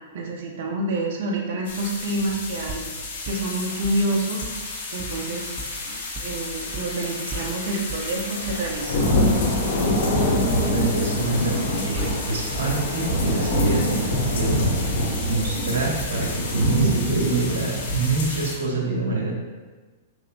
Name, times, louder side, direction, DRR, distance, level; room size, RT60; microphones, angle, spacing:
voice 1, 0.1-2.8 3.2-4.5 4.9-5.5 5.9-9.2, right 1 dB, 65° right, 0 dB, 0.9 m, -28 dB
sound 1, 1.7-18.6, left 1 dB, 65° left, 1.3 m, -26 dB
sound 2, 2.7-4.2 4.4-4.5 5.0-6.3 6.7-7.1 7.3-9.2 9.6-11.1 11.4-11.5 11.9-13.3 13.7-15.5 16.0-16.1, right 3 dB, 25° right, 0.5 m, -39 dB
voice 2, 10.6-14.6 15.3-19.4, right 3 dB, 80° right, -2 dB, 1.4 m, -26 dB
5.5 x 3.5 x 2.4 m, 1.3 s
hypercardioid pair, 120°, 0 cm